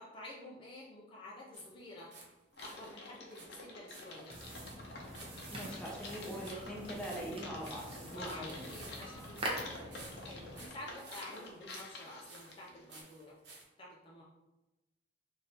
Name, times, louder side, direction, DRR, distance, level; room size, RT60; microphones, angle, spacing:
voice 1, 0.0-2.1 2.6-4.4 8.1-13.4 13.8-14.2, left 1 dB, 30° left, -4 dB, 0.5 m, -50 dB
sound 1, 1.5-2.3 2.5-13.6, right 3 dB, 65° right, 1.0 m, -56 dB
Typing, 2.5-13.0, left 2 dB, 65° left, 0.7 m, -50 dB
sound 2, 4.3-10.7, equal, 30° right, 0.7 m, -45 dB
voice 2, 5.5-8.7, right 1 dB, 5° left, -4 dB, 0.8 m, -43 dB
3.3 x 2.7 x 4.1 m, 0.98 s
head